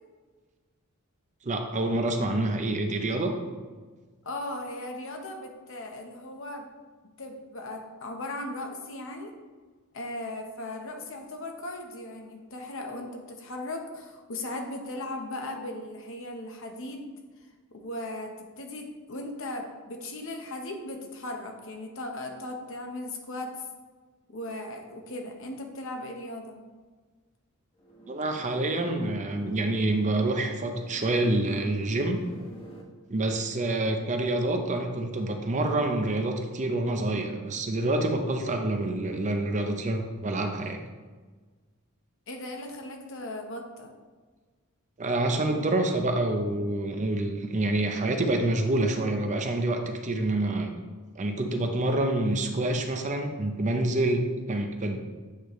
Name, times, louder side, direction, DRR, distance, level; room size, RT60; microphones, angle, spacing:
voice 1, 1.4-3.4 28.1-32.2 33.1-40.8 45.0-50.7 51.2-55.0, right 2 dB, 35° right, 4 dB, 0.6 m, -27 dB
voice 2, 4.2-6.7 7.0-9.3 9.9-17.1 17.7-23.7 24.3-26.6 42.3-43.9, left 1 dB, 60° left, 3 dB, 1.0 m, -37 dB
sound 1, 27.8-32.8, right 1 dB, 25° left, 1.1 m, -47 dB
8.3 x 4.9 x 3.1 m, 1.4 s
head